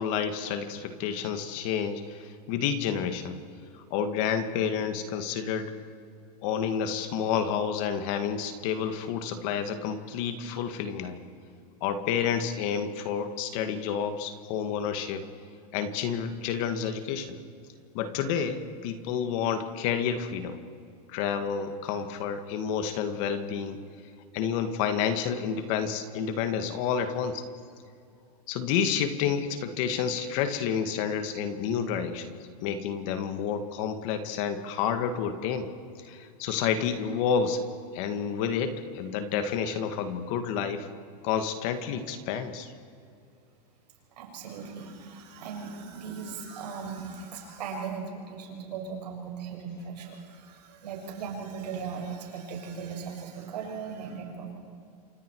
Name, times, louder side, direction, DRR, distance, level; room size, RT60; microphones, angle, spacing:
voice 1, 0.0-3.4 3.7-5.7 6.4-11.2 11.8-15.3 15.7-17.4 17.9-20.6 21.1-23.8 24.3-27.4 28.5-32.3 32.6-35.7 36.0-37.6 37.9-40.9 41.2-42.7, left 7 dB, 50° left, 9 dB, 2.0 m, -29 dB
voice 2, 44.2-54.6, right 6 dB, 80° right, 1 dB, 6.7 m, -38 dB
28.0 x 26.0 x 4.8 m, 2.4 s
supercardioid pair, 145°, 21 cm